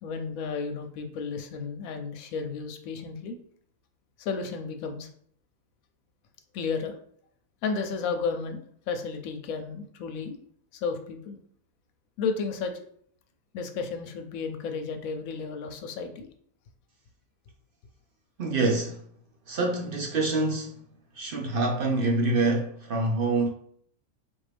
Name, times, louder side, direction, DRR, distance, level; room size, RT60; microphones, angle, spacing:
voice 1, 0.0-3.4 4.2-5.1 6.5-6.9 7.6-10.4 10.7-11.4 12.2-12.9 13.5-16.3, left 5 dB, 70° left, 1.0 m, -33 dB
voice 2, 18.4-19.0 19.5-20.8 21.2-23.5, right 2 dB, 60° right, 0.5 m, -26 dB
4.1 x 2.6 x 3.3 m
omnidirectional pair, 1.6 m